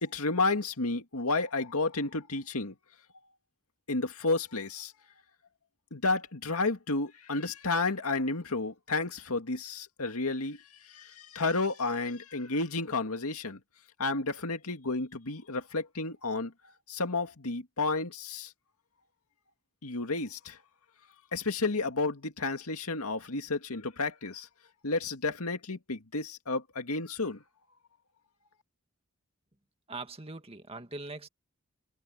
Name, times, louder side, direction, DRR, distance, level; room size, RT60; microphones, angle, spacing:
voice 1, 0.0-2.7 3.9-4.9 5.9-13.6 14.0-16.5 16.9-18.5 19.8-20.6 21.3-24.5 24.8-27.4, left 3 dB, 80° left, 2.1 m, -31 dB
voice 2, 29.9-31.3, right 3 dB, 25° right, 2.0 m, -41 dB
head